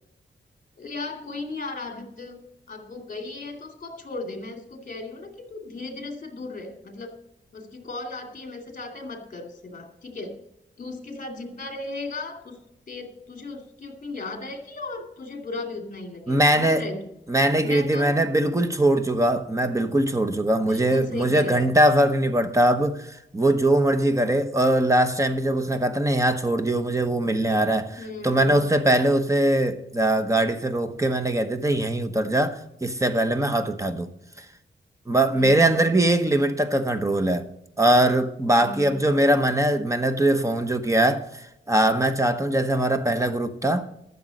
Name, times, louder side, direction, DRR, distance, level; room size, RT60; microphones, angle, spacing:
voice 1, 0.8-7.1 7.5-10.4 10.8-12.6 12.9-17.1 17.6-18.2 20.6-21.6 28.0-28.7 35.3-35.9 38.6-39.1, left 3 dB, 40° left, 2.5 m, -36 dB
voice 2, 16.3-16.9 17.3-34.1 35.1-37.5 37.8-43.9, right 1 dB, 15° right, 0.9 m, -21 dB
13.0 x 7.1 x 6.4 m
wide cardioid pair, 130°, 20 cm